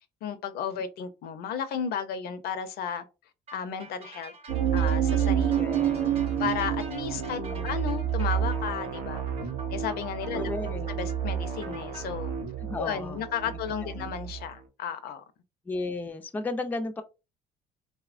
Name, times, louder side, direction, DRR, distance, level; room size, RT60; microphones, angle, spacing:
voice 1, 0.2-3.0 3.5-4.3 4.7-5.5 6.4-9.2 9.7-10.5 10.9-12.3 12.8-15.2, left 7 dB, 65° left, 0.5 m, -33 dB
sound 1, 3.5-12.0, right 2 dB, 35° right, 0.8 m, -48 dB
sound 2, 4.5-14.4, right 9 dB, 90° right, 0.6 m, -29 dB
voice 2, 5.5-6.1 7.4-7.7 10.3-10.9 12.6-13.3 13.8-14.1 15.7-17.0, left 2 dB, 10° left, 0.3 m, -34 dB
3.0 x 2.1 x 2.4 m
cardioid pair, 110°, 17 cm